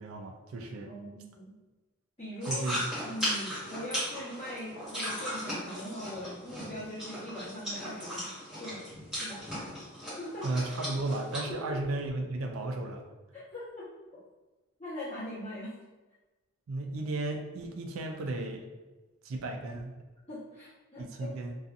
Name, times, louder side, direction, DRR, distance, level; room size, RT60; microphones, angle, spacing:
voice 1, 0.0-0.9 2.5-2.8 10.4-13.1 16.7-18.6 19.2-20.0 21.0-21.6, right 2 dB, 80° right, 3 dB, 0.4 m, -34 dB
voice 2, 0.8-1.5 2.2-2.7 3.0-8.3 8.6-8.8 9.1-9.4 10.2-10.6 11.5-11.7 13.3-13.8 14.8-15.7 20.3-21.3, left 1 dB, 30° left, -16 dB, 1.0 m, -41 dB
sound 1, 2.4-11.4, equal, 5° right, 1.2 m, -37 dB
2.6 x 2.3 x 2.4 m, 1.2 s
head